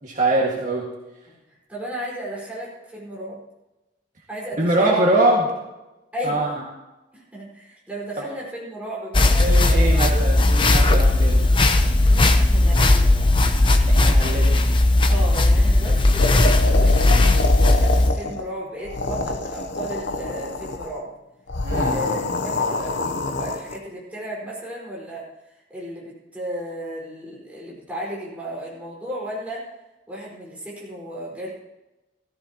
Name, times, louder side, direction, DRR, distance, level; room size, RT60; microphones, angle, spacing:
voice 1, 0.0-0.8 4.6-5.5 6.2-6.5 9.4-11.4 13.9-14.5 21.6-22.0, right 2 dB, 45° right, -3 dB, 1.9 m, -22 dB
voice 2, 1.3-3.4 4.3-5.1 6.1-6.6 7.1-10.2 12.1-13.3 15.1-17.3 17.6-21.1 21.9-29.7 30.1-31.5, equal, 10° right, -6 dB, 4.8 m, -34 dB
sound 1, 9.1-18.1, left 2 dB, 30° left, 0.8 m, -17 dB
sound 2, 16.2-18.5 18.8-20.9 21.5-23.8, left 2 dB, 85° left, 0.9 m, -27 dB
16.5 x 14.5 x 3.0 m, 1.0 s
head